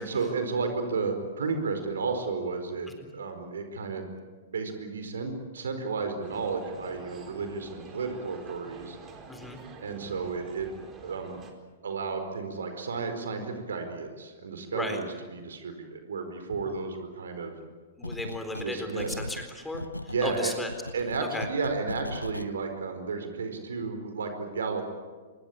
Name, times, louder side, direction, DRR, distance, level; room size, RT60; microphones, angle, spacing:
voice 1, 0.0-2.9 3.1-4.1 4.5-9.0 9.8-10.7 11.0-11.4 11.8-17.5 18.6-19.2 20.1-20.5 20.9-24.8, right 4 dB, 65° right, 7 dB, 4.7 m, -32 dB
sound 1, 6.2-11.5, right 4 dB, 25° right, 4.4 m, -47 dB
voice 2, 9.3-9.6 14.7-15.0 18.0-20.7 21.2-21.5, left 1 dB, 5° left, 5 dB, 4.1 m, -35 dB
sound 2, 18.0-18.7 19.0-22.5, left 1 dB, 90° left, 0.7 m, -38 dB
26.0 x 22.5 x 8.7 m, 1.5 s
figure-of-eight pair, 110°, 0 cm